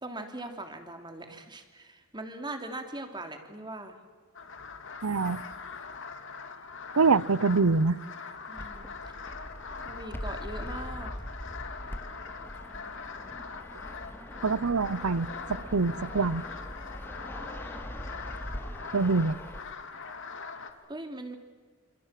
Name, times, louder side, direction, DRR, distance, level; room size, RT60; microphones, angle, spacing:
voice 1, 0.0-4.0 8.5-8.9 9.8-11.1 20.9-21.4, right 2 dB, 20° right, 3.2 m, -40 dB
sound 1, 4.3-20.7, left 5 dB, 60° left, 2.8 m, -42 dB
voice 2, 5.0-5.4 7.0-8.0 14.4-16.4 18.9-19.4, right 4 dB, 85° right, 0.8 m, -25 dB
Fixed-wing aircraft airplane, 8.6-19.6, equal, 10° left, 2.2 m, -42 dB
28.0 x 27.0 x 7.6 m
head